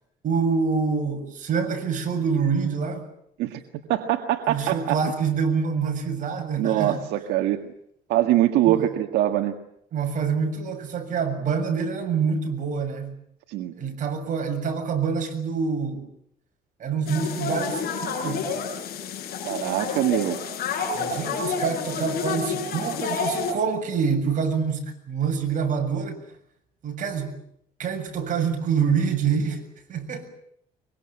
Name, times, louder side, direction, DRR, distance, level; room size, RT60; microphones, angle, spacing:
voice 1, 0.2-3.0 4.5-7.0 8.6-8.9 9.9-13.1 13.8-16.1 16.8-18.5 20.9-26.1 26.8-27.4 27.8-29.6 29.9-30.3, right 6 dB, 50° right, 4 dB, 7.3 m, -26 dB
voice 2, 3.9-5.0 6.6-7.6 8.1-9.6 13.5-13.7 19.4-20.4, right 13 dB, 85° right, 5 dB, 1.7 m, -23 dB
sound 1, 17.1-23.5, left 5 dB, 60° left, 7.4 m, -29 dB
24.0 x 22.5 x 8.8 m, 0.73 s
cardioid pair, 110°, 17 cm